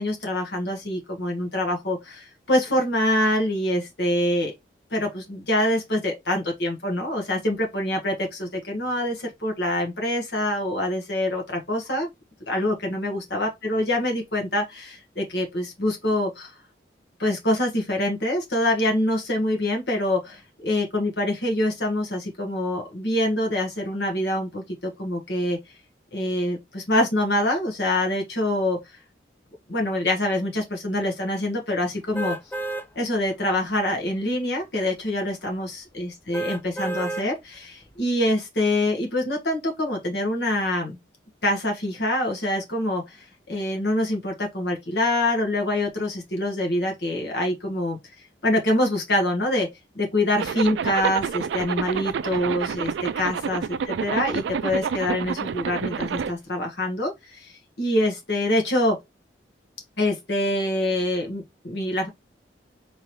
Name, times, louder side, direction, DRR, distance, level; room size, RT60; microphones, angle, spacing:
voice 1, 0.0-4.5 4.9-12.1 12.5-16.5 17.2-25.6 26.1-28.8 29.7-32.4 32.9-41.0 41.4-48.0 48.4-49.7 49.9-59.0 60.0-62.1, left 1 dB, 70° left, 1.4 m, -25 dB
sound 1, 32.1-32.9 33.4-33.5 36.3-37.3 37.8-37.9, right 2 dB, 10° left, 0.4 m, -31 dB
Zipper (clothing), 50.4-56.3, right 7 dB, 80° right, 0.3 m, -28 dB
3.8 x 3.3 x 2.9 m
head